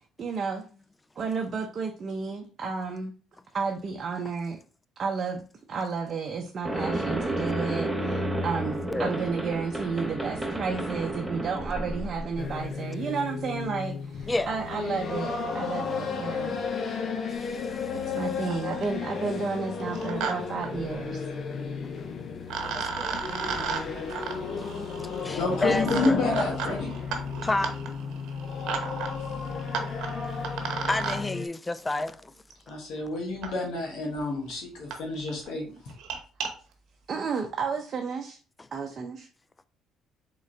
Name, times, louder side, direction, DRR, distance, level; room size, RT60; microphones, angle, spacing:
voice 1, 0.2-0.6 1.2-3.1 3.5-4.6 5.0-16.6 17.9-21.2 37.1-38.4 38.7-39.3, right 5 dB, 45° right, 0.7 m, -32 dB
sound 1, 6.7-12.7, right 1 dB, 5° right, 0.9 m, -31 dB
sound 2, 12.4-31.5, left 5 dB, 50° left, 0.7 m, -34 dB
voice 2, 14.3-14.6 17.3-18.2 22.6-23.6 24.1-26.2 27.4-27.8 30.9-32.3, left 2 dB, 20° left, 0.4 m, -31 dB
sound 3, 18.2-18.3 18.5-19.0 19.8-20.3 20.6-20.7 22.0-22.1 22.5-31.2 32.5-32.6 33.4-33.5 34.2-34.3 34.5-34.6 34.9-35.0 35.3-35.5 35.9-36.5, right 6 dB, 75° right, 0.9 m, -35 dB
voice 3, 25.3-26.9 32.7-35.9, left 2 dB, 75° left, 1.6 m, -29 dB
3.9 x 3.7 x 3.3 m
cardioid pair, 85°, 0 cm